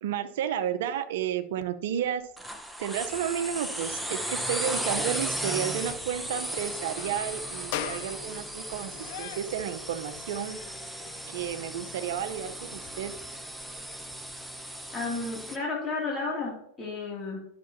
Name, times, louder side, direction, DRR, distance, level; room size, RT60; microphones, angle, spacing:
voice 1, 0.0-2.2 2.8-10.6 11.3-13.1, right 9 dB, 65° right, 10 dB, 0.8 m, -32 dB
sound 1, 2.4-15.6, right 1 dB, ahead, 1.0 m, -36 dB
sound 2, 6.9-13.0, left 11 dB, 55° left, 0.6 m, -42 dB
voice 2, 14.9-17.5, left 3 dB, 20° left, -4 dB, 2.6 m, -32 dB
11.5 x 6.8 x 2.8 m, 0.72 s
figure-of-eight pair, 90°, 0 cm